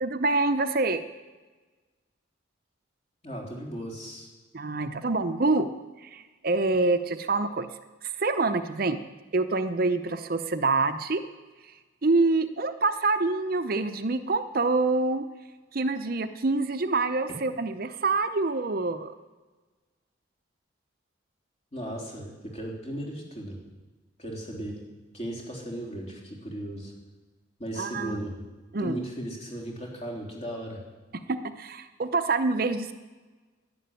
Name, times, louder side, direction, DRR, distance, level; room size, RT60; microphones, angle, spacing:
voice 1, 0.0-1.0 4.5-5.7 6.0-7.7 8.0-9.0 9.3-11.2 12.0-15.3 15.7-19.1 27.8-28.2 28.7-29.0 31.1-32.9, right 3 dB, 50° right, 10 dB, 0.7 m, -26 dB
voice 2, 3.2-4.3 21.7-23.6 24.2-24.8 25.1-26.9 27.6-28.4 28.8-30.8, right 1 dB, 35° left, -1 dB, 3.5 m, -36 dB
11.5 x 11.0 x 9.1 m, 1.3 s
head